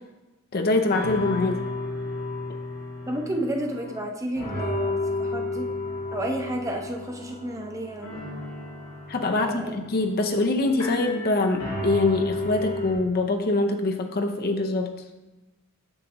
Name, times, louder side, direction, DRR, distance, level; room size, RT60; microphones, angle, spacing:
voice 1, 0.5-1.6 9.1-14.9, left 2 dB, 45° left, 4 dB, 0.6 m, -24 dB
sound 1, 0.6-0.7 0.9-4.1 4.4-12.9, left 2 dB, 80° left, 1.9 m, -33 dB
voice 2, 3.1-5.7 6.1-8.1 9.4-9.8, right 1 dB, 15° right, 1 dB, 0.7 m, -31 dB
7.6 x 6.2 x 3.0 m, 1.1 s
head